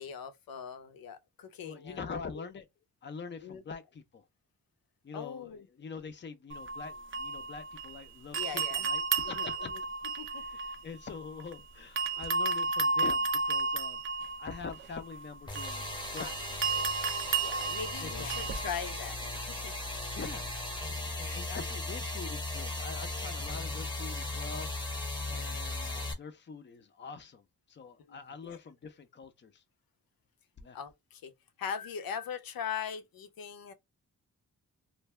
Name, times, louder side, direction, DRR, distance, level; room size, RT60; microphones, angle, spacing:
voice 1, 0.0-2.1 2.4-2.5 3.4-3.6 5.1-5.6 8.3-8.9 9.2-9.5 10.2-10.4 17.4-19.7 28.1-28.6 30.7-31.3 31.6-33.7, left 7 dB, 90° left, 0.6 m, -40 dB
voice 2, 1.6-2.7 3.0-4.2 5.0-9.7 10.3-14.0 14.4-16.4 17.6-18.6 20.1-20.5 21.2-24.9 25.3-29.6 30.6-30.8, left 5 dB, 35° left, 0.5 m, -44 dB
sound 1, 6.5-8.0 8.3-11.5 12.0-18.7, right 4 dB, 35° right, 0.4 m, -33 dB
sound 2, 15.5-26.1, left 2 dB, 15° left, 0.9 m, -37 dB
2.5 x 2.2 x 3.0 m
wide cardioid pair, 120°, 34 cm